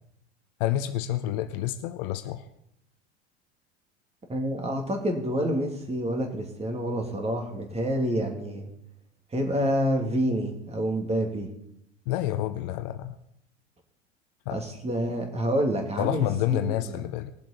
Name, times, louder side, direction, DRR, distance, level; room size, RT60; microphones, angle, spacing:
voice 1, 0.6-2.4 12.1-13.1 14.5-14.6 16.0-17.3, left 13 dB, 50° left, 11 dB, 0.7 m, -28 dB
voice 2, 4.3-8.7 9.3-11.5 14.5-17.1, equal, 20° right, 3 dB, 2.5 m, -28 dB
20.0 x 7.4 x 4.3 m, 0.76 s
figure-of-eight pair, 80°, 34 cm